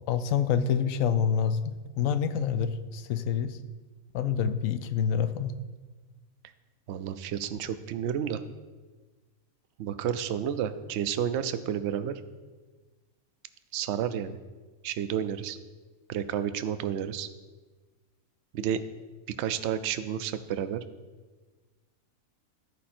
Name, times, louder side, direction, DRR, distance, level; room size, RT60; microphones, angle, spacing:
voice 1, 0.0-3.6 4.1-5.5, left 7 dB, 75° left, 12 dB, 1.0 m, -27 dB
voice 2, 6.9-8.4 9.8-12.2 13.7-14.4 14.8-15.6 16.1-17.3 18.5-18.8 19.4-20.8, right 9 dB, 65° right, 12 dB, 0.8 m, -31 dB
14.0 x 5.0 x 4.3 m, 1.3 s
omnidirectional pair, 1.4 m